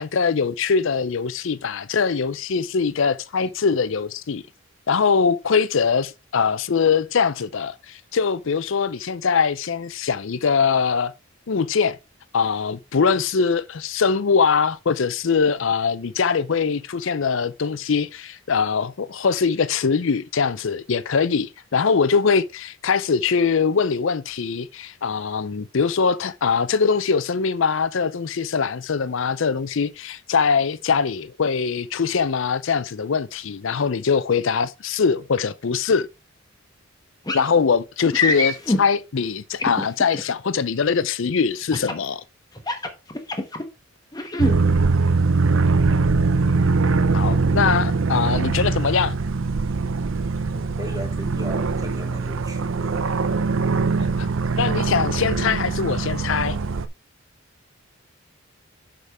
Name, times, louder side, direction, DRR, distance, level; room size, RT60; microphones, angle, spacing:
voice 1, 0.0-4.4 4.9-11.1 11.5-12.0 12.3-36.1 37.3-42.2 47.1-49.2 54.2-54.3 54.6-56.6, left 5 dB, 65° left, 0.5 m, -22 dB
sound 1, 37.3-37.5 38.1-38.8 39.6-40.2 41.7-42.0 42.5-43.6 44.1-44.5, left 1 dB, 20° left, 1.0 m, -24 dB
sound 2, 44.4-56.9, right 3 dB, 65° right, 0.6 m, -22 dB
voice 2, 44.5-44.9 50.5-53.1, equal, 15° right, 1.5 m, -37 dB
6.6 x 5.1 x 4.6 m
head